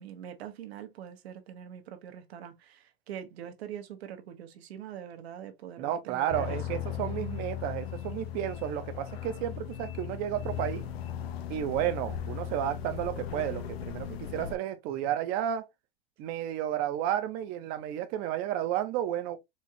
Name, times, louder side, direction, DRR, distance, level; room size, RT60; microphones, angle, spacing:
voice 1, 0.0-6.6, right 9 dB, 80° right, 1.1 m, -43 dB
voice 2, 5.8-10.9 11.5-15.7 16.2-19.4, right 11 dB, 30° right, 0.5 m, -32 dB
sound 1, 6.3-14.6, left 9 dB, 75° left, 0.7 m, -37 dB
4.4 x 2.4 x 2.7 m
supercardioid pair, 160°, 31 cm